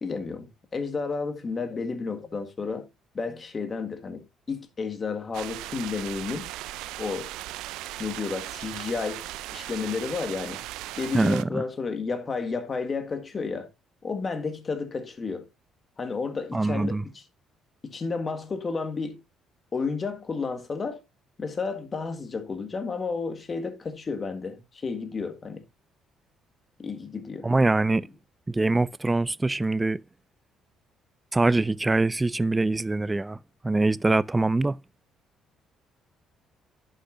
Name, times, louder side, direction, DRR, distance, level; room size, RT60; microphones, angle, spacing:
voice 1, 0.0-2.9 3.1-6.5 7.0-7.3 8.0-10.6 10.9-13.7 14.0-15.5 16.0-17.2 17.9-19.2 19.7-21.0 21.4-25.6 26.8-27.5, left 4 dB, 40° left, 1.7 m, -32 dB
sound 1, 5.3-11.4, right 16 dB, 85° right, 0.4 m, -38 dB
voice 2, 11.1-11.6 16.5-17.0 27.4-28.1 28.5-30.0 31.3-33.4 33.6-34.8, right 2 dB, 15° right, 0.4 m, -23 dB
11.5 x 6.6 x 2.5 m
supercardioid pair, 70°, 0 cm